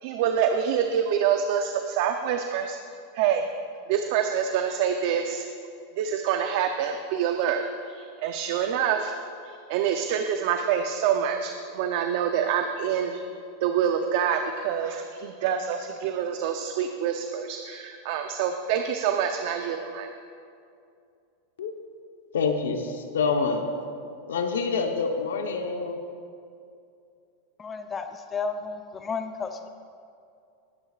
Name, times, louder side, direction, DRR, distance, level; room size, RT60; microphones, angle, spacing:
voice 1, 0.0-2.8 3.1-3.5 3.9-5.5 6.0-9.1 9.4-13.2 13.6-20.1, right 8 dB, 65° right, 5 dB, 0.7 m, -26 dB
voice 2, 22.3-23.7 24.3-26.0, left 4 dB, 90° left, 4 dB, 1.0 m, -27 dB
voice 3, 27.6-29.7, left 5 dB, 25° left, 6 dB, 0.7 m, -33 dB
20.0 x 9.8 x 2.5 m, 2.5 s
hypercardioid pair, 120°, 0 cm